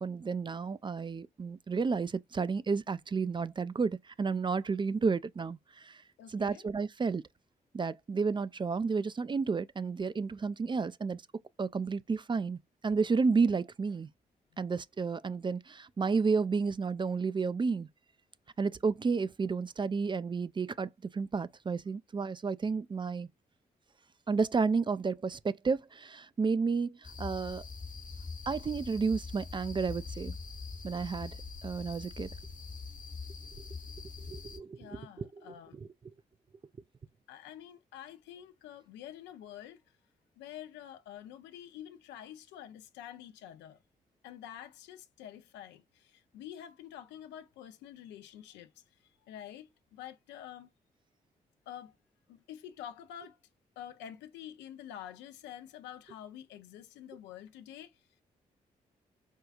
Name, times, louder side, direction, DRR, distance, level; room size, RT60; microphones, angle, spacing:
voice 1, 0.0-6.0 6.3-7.2 7.7-11.2 11.6-14.1 14.6-17.9 18.6-23.3 24.3-27.6 28.5-30.3 30.8-31.4 31.6-32.3 34.3-34.9 35.2-35.5, right 4 dB, 25° right, 0.3 m, -31 dB
voice 2, 6.2-6.6 34.8-35.8 37.3-39.8 40.4-43.8 44.2-48.8 49.2-50.7 51.7-51.9 52.3-53.4 53.8-58.0, left 10 dB, 85° left, 0.5 m, -48 dB
sound 1, 27.0-34.6, left 4 dB, 50° left, 0.9 m, -43 dB
4.5 x 2.3 x 2.2 m
hypercardioid pair, 40°, 18 cm